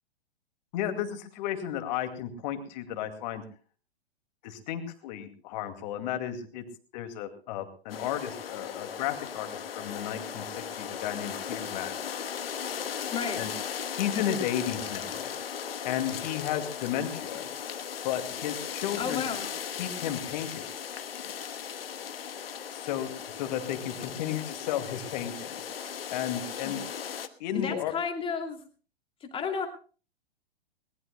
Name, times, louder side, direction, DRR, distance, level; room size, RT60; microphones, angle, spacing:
voice 1, 0.7-3.4 4.4-6.6 6.9-12.0 13.3-13.5 13.9-15.3 15.8-17.5 18.0-19.3 19.7-20.7 22.7-25.6 26.1-26.8 27.4-27.9, left 10 dB, 45° left, 7 dB, 2.3 m, -33 dB
sound 1, 7.9-27.3, left 8 dB, 70° left, 1.2 m, -37 dB
voice 2, 13.1-13.5 19.0-19.5 26.6-26.7 27.5-28.6 29.3-29.7, left 6 dB, 15° left, 4 dB, 2.6 m, -32 dB
21.0 x 19.0 x 2.2 m, 0.39 s
figure-of-eight pair, 110°, 31 cm